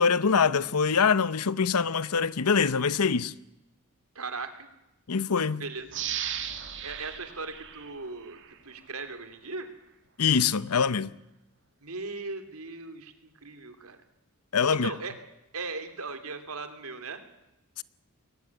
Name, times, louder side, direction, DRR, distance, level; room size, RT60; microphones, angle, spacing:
voice 1, 0.0-3.3 5.1-5.6 10.2-11.1 14.5-14.9 17.8-17.9, left 6 dB, 90° left, 0.8 m, -24 dB
voice 2, 4.1-4.7 5.6-5.9 6.8-8.4 8.6-9.7 11.8-14.0 14.7-15.1 15.5-17.2, right 3 dB, 75° right, 2.9 m, -38 dB
sound 1, 5.9-8.6 9.0-9.1, right 9 dB, 55° right, 2.2 m, -36 dB
22.0 x 17.5 x 9.6 m
head